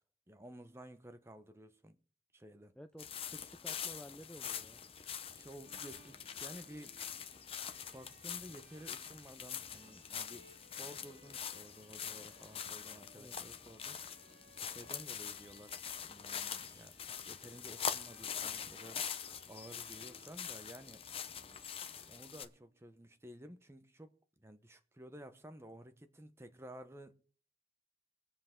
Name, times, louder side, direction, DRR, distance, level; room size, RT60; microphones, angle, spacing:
voice 1, 0.3-2.0 2.3-2.7 5.3-7.0 7.9-14.0 14.6-16.9 17.3-19.0 19.5-21.0 22.1-27.2, right 1 dB, 15° right, 0.8 m, -53 dB
voice 2, 2.8-4.8 13.1-13.3, equal, 5° left, 0.5 m, -53 dB
sound 1, 3.0-22.4, left 8 dB, 30° left, 0.8 m, -44 dB
Bowed string instrument, 5.6-23.0, right 2 dB, 70° right, 1.6 m, -66 dB
23.0 x 7.8 x 3.7 m
head